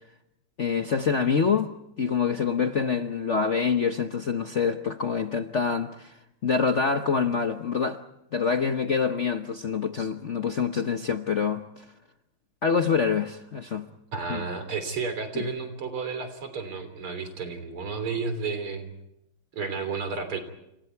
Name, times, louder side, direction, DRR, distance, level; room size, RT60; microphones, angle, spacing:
voice 1, 0.6-6.1 6.4-8.0 8.3-11.8 12.6-13.9 14.3-14.4 15.3-15.5, left 5 dB, 50° left, 0.9 m, -26 dB
voice 2, 14.1-18.9 19.5-20.4, right 5 dB, 75° right, 4.3 m, -32 dB
29.5 x 27.5 x 4.6 m
omnidirectional pair, 2.4 m